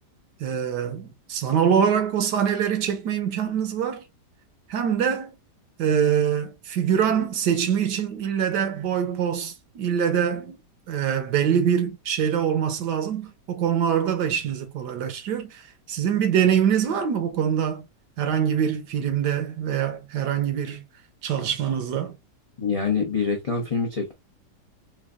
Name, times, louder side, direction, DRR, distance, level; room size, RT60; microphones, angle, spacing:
voice 1, 0.4-4.0 4.7-5.3 5.8-10.6 10.9-17.9 18.2-20.8 21.2-22.1, right 8 dB, 75° right, 1.3 m, -24 dB
voice 2, 22.6-24.1, left 5 dB, 50° left, 0.4 m, -25 dB
4.5 x 2.3 x 2.3 m
omnidirectional pair, 1.9 m